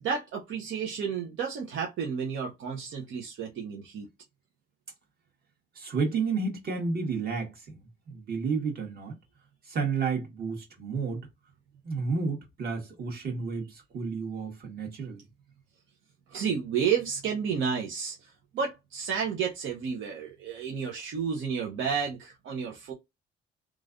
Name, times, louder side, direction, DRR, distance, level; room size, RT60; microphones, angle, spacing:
voice 1, 0.0-4.1 16.3-22.9, right 6 dB, 75° right, 0.8 m, -31 dB
voice 2, 5.7-7.8 8.1-9.2 9.7-11.3 11.8-15.2, right 4 dB, 50° right, 1.5 m, -31 dB
3.1 x 2.5 x 2.5 m
cardioid pair, 90°, 20 cm